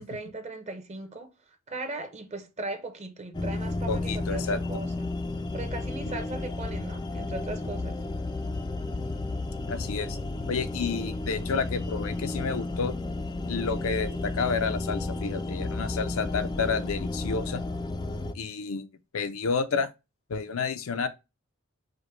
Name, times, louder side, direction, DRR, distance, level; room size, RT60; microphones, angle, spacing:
voice 1, 0.0-5.1 5.5-8.0, right 2 dB, 35° right, 0.9 m, -38 dB
sound 1, 3.3-18.3, left 2 dB, 20° left, 0.4 m, -32 dB
voice 2, 3.9-4.6 6.1-6.2 9.7-10.2 10.5-12.9 13.5-17.6 18.3-18.9 19.1-19.9 20.3-21.1, left 5 dB, 80° left, 0.6 m, -30 dB
5.1 x 2.2 x 4.4 m
head